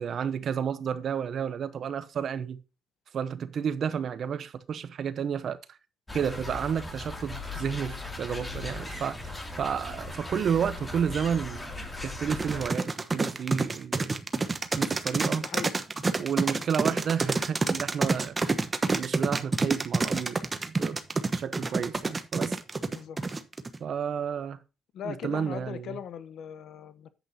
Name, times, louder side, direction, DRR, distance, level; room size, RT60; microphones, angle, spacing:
voice 1, 0.0-2.6 3.1-5.6 6.1-11.7 12.0-14.1 14.7-15.4 16.1-18.6 18.9-21.0 21.3-22.6 23.8-24.6 25.0-26.0, right 7 dB, 60° right, 0.9 m, -31 dB
sound 1, 6.1-12.7, left 2 dB, 15° left, 2.7 m, -38 dB
sound 2, 12.3-23.8, right 3 dB, 25° right, 1.1 m, -28 dB
voice 2, 15.4-15.7 16.5-16.6 22.9-23.4 24.9-27.1, left 8 dB, 75° left, 0.9 m, -39 dB
10.0 x 8.3 x 2.8 m
cardioid pair, 90°, 0 cm